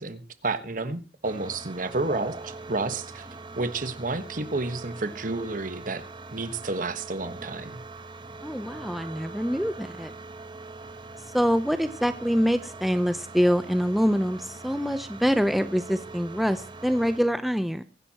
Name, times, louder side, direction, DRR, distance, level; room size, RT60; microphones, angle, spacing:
voice 1, 0.0-3.3 3.6-6.0 6.3-7.8, right 3 dB, 50° right, 11 dB, 1.3 m, -31 dB
sound 1, 1.2-17.2, right 3 dB, 30° right, 1.0 m, -42 dB
voice 2, 8.4-10.1 11.3-17.8, equal, ahead, 10 dB, 0.6 m, -25 dB
23.0 x 11.0 x 2.9 m, 0.32 s
head